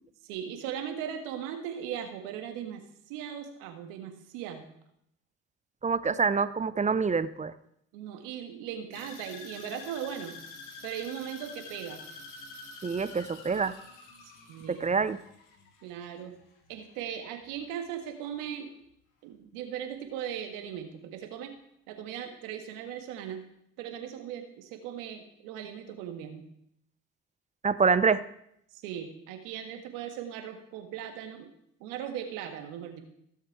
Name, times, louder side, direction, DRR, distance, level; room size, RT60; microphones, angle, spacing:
voice 1, 0.2-4.7 7.9-10.4 10.8-12.0 14.2-14.9 15.8-16.3 16.7-18.7 19.2-21.5 21.9-23.5 23.8-26.5 28.7-31.5 31.8-33.0, right 9 dB, 85° right, 6 dB, 1.7 m, -38 dB
voice 2, 5.8-7.5 12.8-13.7 14.7-15.2 27.6-28.2, right 5 dB, 20° right, 15 dB, 0.6 m, -26 dB
sound 1, 8.9-17.1 17.4-17.9 18.3-18.4, left 4 dB, 80° left, 2.0 m, -47 dB
16.0 x 6.6 x 4.7 m, 0.74 s
supercardioid pair, 70°, 32 cm